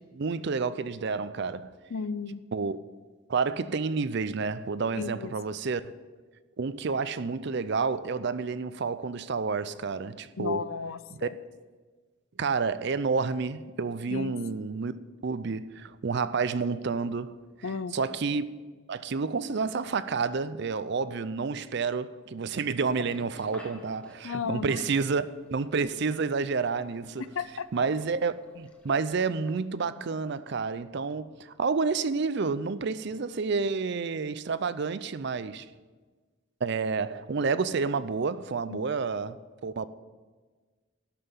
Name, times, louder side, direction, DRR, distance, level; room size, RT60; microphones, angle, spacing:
voice 1, 0.1-1.7 2.5-2.8 3.3-5.8 6.6-10.7 11.1-11.2 12.4-14.9 15.2-17.4 17.9-18.4 18.9-25.3 25.5-27.2 27.7-35.7 36.6-39.4 39.6-39.9, right 4 dB, 55° right, 0.5 m, -29 dB
voice 2, 1.9-2.4 4.9-5.3 10.4-11.4 14.1-14.4 17.6-18.0 24.2-24.9 27.3-27.9 38.7-38.9, left 5 dB, 75° left, 0.5 m, -34 dB
sound 1, 22.8-29.6, left 1 dB, 5° left, 1.1 m, -54 dB
12.0 x 5.8 x 8.2 m
head